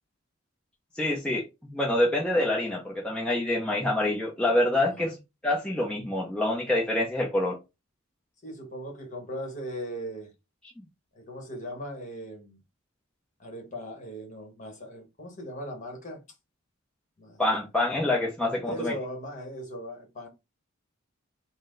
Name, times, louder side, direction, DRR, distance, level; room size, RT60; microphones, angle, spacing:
voice 1, 1.0-5.1 5.4-7.6 17.4-18.9, left 1 dB, 5° left, 0.6 m, -26 dB
voice 2, 4.8-5.2 8.4-10.3 11.1-12.6 13.4-16.2 17.2-17.4 18.6-20.3, equal, 35° left, 1.2 m, -38 dB
4.3 x 2.1 x 3.8 m
head